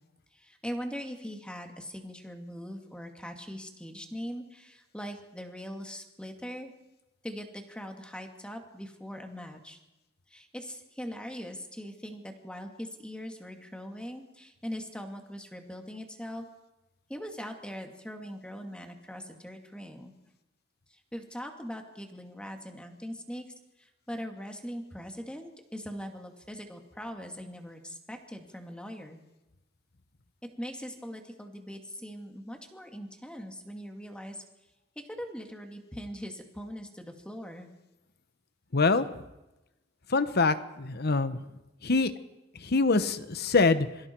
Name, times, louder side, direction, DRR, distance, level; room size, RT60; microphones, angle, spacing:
voice 1, 0.3-6.7 7.2-9.8 10.3-16.5 17.1-20.1 20.9-23.4 23.8-29.2 30.6-34.4 35.1-37.7, equal, 5° left, 4 dB, 2.4 m, -41 dB
voice 2, 38.7-39.1 40.1-41.4 41.8-42.1 42.6-43.9, left 3 dB, 55° left, 12 dB, 1.1 m, -24 dB
26.5 x 23.5 x 4.6 m, 0.98 s
head